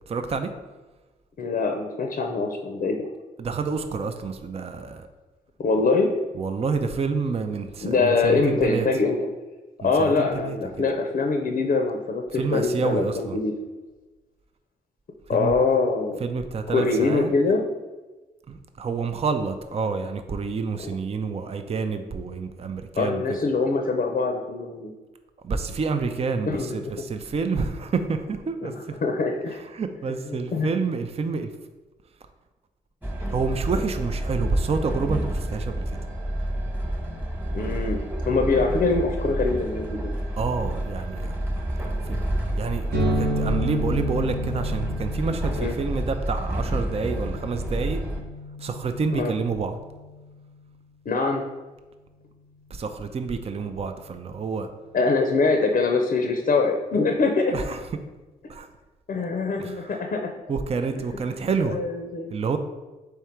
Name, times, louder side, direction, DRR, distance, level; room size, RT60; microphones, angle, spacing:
voice 1, 0.1-0.5 3.4-5.1 6.3-8.9 9.8-10.6 12.3-13.4 15.3-15.5 16.2-17.3 18.5-23.2 25.4-28.7 29.3-29.4 29.7-31.5 33.3-35.8 40.4-41.6 42.0-42.2 42.6-42.9 43.2-48.0 48.6-49.8 52.7-54.7 57.5-57.8 58.5-58.7 59.6-60.0 60.5-61.8 62.3-62.6, right 4 dB, 35° right, 7 dB, 0.5 m, -28 dB
voice 2, 1.4-3.1 5.6-6.1 7.8-9.3 9.8-13.5 15.3-16.2 16.7-17.6 20.8-20.9 23.0-24.9 26.5-26.8 28.6-29.6 30.3-30.7 37.5-40.1 45.6-45.7 49.1-49.3 51.1-51.4 54.9-57.5 59.1-60.4 61.7-62.3, left 3 dB, 45° left, 3 dB, 0.6 m, -24 dB
Train, 33.0-48.2, right 1 dB, 10° right, 1.2 m, -29 dB
sound 1, 42.9-50.5, equal, 55° right, 0.9 m, -32 dB
3.6 x 3.4 x 4.4 m, 1.2 s
supercardioid pair, 50°, 19 cm